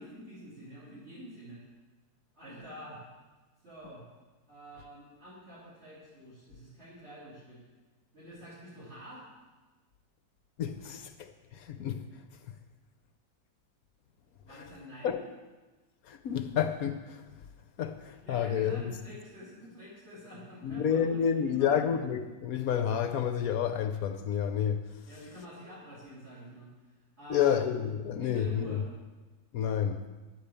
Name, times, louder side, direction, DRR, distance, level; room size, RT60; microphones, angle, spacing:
voice 1, 0.0-1.6 2.3-3.0 3.6-4.0 4.5-7.6 8.1-9.3 14.4-15.2 18.3-21.8 25.1-26.7 27.2-27.6 28.2-28.9, equal, 35° right, -9 dB, 3.5 m, -47 dB
voice 2, 10.6-11.1 11.5-12.1 15.0-15.2 16.1-17.2 17.8-18.8 20.6-24.8 27.3-28.8 29.5-30.0, left 8 dB, 65° left, 8 dB, 1.0 m, -29 dB
10.5 x 8.6 x 7.0 m, 1.2 s
omnidirectional pair, 2.0 m